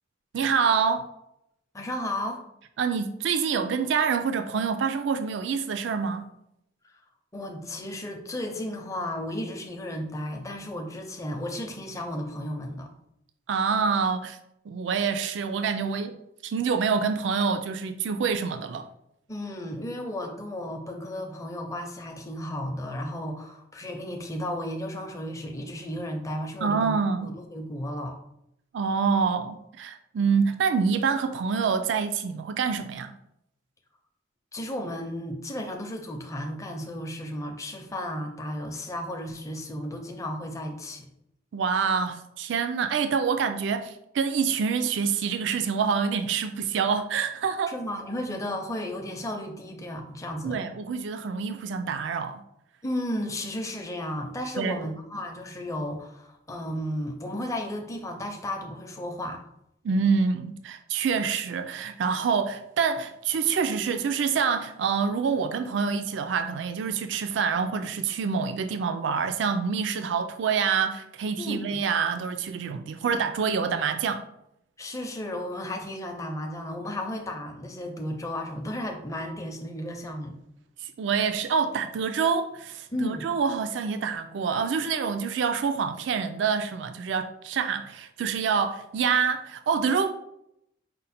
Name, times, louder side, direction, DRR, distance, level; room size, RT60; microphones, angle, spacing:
voice 1, 0.3-1.1 2.8-6.3 13.5-14.4 14.7-16.2 16.4-18.9 26.6-27.3 28.7-33.1 41.5-47.7 50.4-52.4 54.6-54.8 59.8-74.2 80.8-90.1, right 6 dB, 75° right, 0.4 m, -26 dB
voice 2, 1.7-2.4 7.3-12.9 19.3-28.2 34.5-41.1 47.7-50.6 52.8-59.5 71.4-71.8 74.8-80.4 82.9-83.3, left 1 dB, 15° left, 0.6 m, -34 dB
5.1 x 2.1 x 4.1 m
head